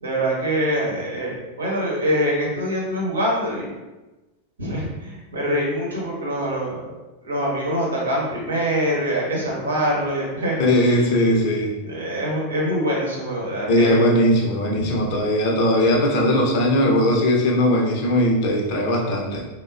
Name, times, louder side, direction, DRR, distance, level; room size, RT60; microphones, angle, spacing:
voice 1, 0.0-3.7 4.6-6.8 7.2-11.0 11.9-14.0 14.8-14.9, equal, 70° right, -4 dB, 0.9 m, -24 dB
voice 2, 10.6-11.7 13.7-19.4, left 1 dB, 45° left, -1 dB, 0.6 m, -19 dB
3.4 x 2.1 x 2.4 m, 1.1 s
figure-of-eight pair, 90°, 0 cm